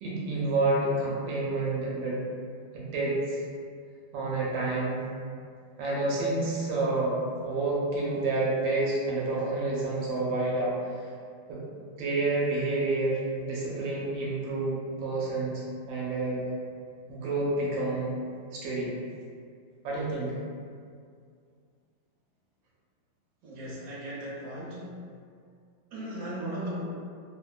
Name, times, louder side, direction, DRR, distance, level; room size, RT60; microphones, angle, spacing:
voice 1, 0.0-2.2 2.7-3.4 4.1-5.0 5.8-10.7 11.5-11.6 12.0-15.6 15.9-16.5 17.1-18.1 18.5-18.9 19.8-20.3, right 2 dB, 80° right, -5 dB, 1.3 m, -29 dB
voice 2, 23.4-24.9 25.9-26.8, right 1 dB, 60° right, -8 dB, 1.1 m, -37 dB
3.0 x 2.1 x 2.3 m, 2.2 s
omnidirectional pair, 2.1 m